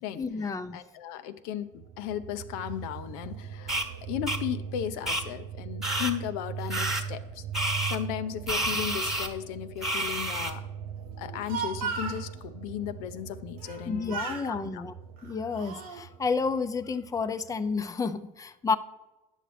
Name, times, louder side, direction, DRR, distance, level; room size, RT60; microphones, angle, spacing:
voice 1, 0.1-0.8 13.9-14.9 15.2-18.8, left 4 dB, 20° left, 10 dB, 0.5 m, -30 dB
voice 2, 0.7-7.4 7.9-10.7 11.2-14.8, left 10 dB, 80° left, 10 dB, 0.5 m, -35 dB
sound 1, 1.7-17.9, right 7 dB, 60° right, 0.5 m, -40 dB
sound 2, 3.7-3.9 4.3-4.4 5.1-5.2 5.8-6.1 6.7-7.0 7.5-8.0 8.5-9.3 9.8-10.5, right 1 dB, ahead, 1.2 m, -29 dB
Speech, 11.2-12.2 13.6-13.8 14.1-14.5 15.2-16.0, right 5 dB, 90° right, 1.0 m, -35 dB
9.8 x 6.3 x 3.3 m, 1.1 s
supercardioid pair, 85°, 19 cm